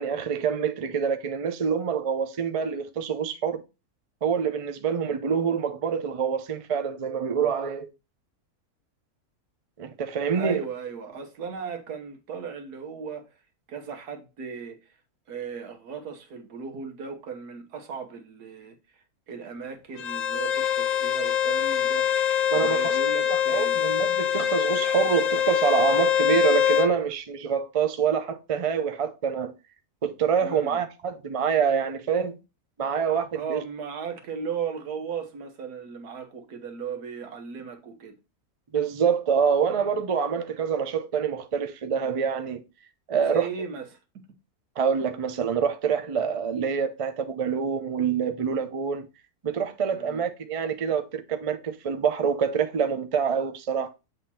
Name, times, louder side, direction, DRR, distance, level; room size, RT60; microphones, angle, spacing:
voice 1, 0.0-3.6 4.2-7.9 9.8-10.6 22.5-23.0 23.5-29.5 30.0-32.4 32.8-33.6 38.7-42.6 43.1-43.5 44.8-49.1 49.4-53.9, right 7 dB, 50° right, 0.4 m, -26 dB
voice 2, 10.3-13.3 13.7-15.0 15.3-23.8 30.4-30.8 33.3-38.1 43.3-44.0 49.9-50.2, right 6 dB, 85° right, 1.7 m, -36 dB
Bowed string instrument, 20.0-26.9, left 10 dB, 65° left, 0.9 m, -24 dB
7.8 x 3.6 x 4.2 m
omnidirectional pair, 1.6 m